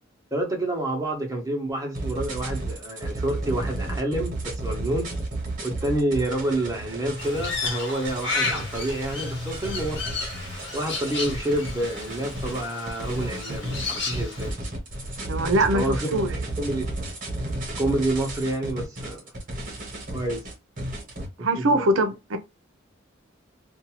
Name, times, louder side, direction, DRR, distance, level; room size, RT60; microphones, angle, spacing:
voice 1, 0.3-5.1 5.6-10.2 10.7-14.5 15.7-16.0 16.6-16.9 17.8-19.2 20.1-20.4 21.4-21.8, right 1 dB, 15° right, 0.8 m, -28 dB
sound 1, 1.9-21.3, right 1 dB, 40° right, 1.0 m, -33 dB
Crow, 7.2-14.5, left 4 dB, 60° left, 1.1 m, -33 dB
voice 2, 15.3-16.3 21.4-22.4, right 1 dB, 85° right, 0.6 m, -22 dB
2.6 x 2.3 x 2.9 m
head